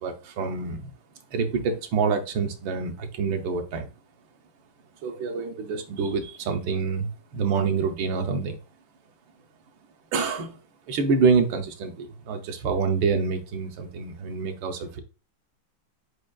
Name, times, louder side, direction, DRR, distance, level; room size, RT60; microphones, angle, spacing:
voice 1, 0.0-0.8 1.3-3.9 5.0-8.6 10.1-10.6 10.9-15.0, right 5 dB, 75° right, 1.4 m, -26 dB
5.0 x 4.5 x 2.3 m
omnidirectional pair, 2.2 m